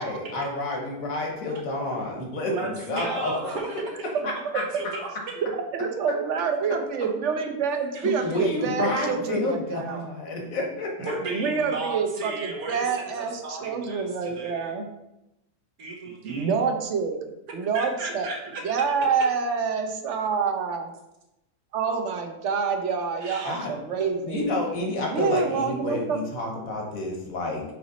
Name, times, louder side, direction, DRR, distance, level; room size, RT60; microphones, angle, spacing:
voice 1, 0.0-3.5 4.2-4.6 8.0-11.1 23.5-23.7 24.2-27.6, left 2 dB, 70° left, 0 dB, 1.7 m, -29 dB
voice 2, 2.5-4.3 4.5-5.3 7.4-7.5 7.9-8.2 11.0-14.8 15.8-16.5 17.7-18.6 23.2-23.6, right 3 dB, 85° right, 0 dB, 1.5 m, -35 dB
voice 3, 5.7-10.0 11.3-14.9 16.2-18.3 18.6-20.9 21.7-24.5 25.1-26.2, right 5 dB, 60° right, 5 dB, 1.0 m, -27 dB
7.9 x 3.1 x 4.0 m, 0.90 s
omnidirectional pair, 1.5 m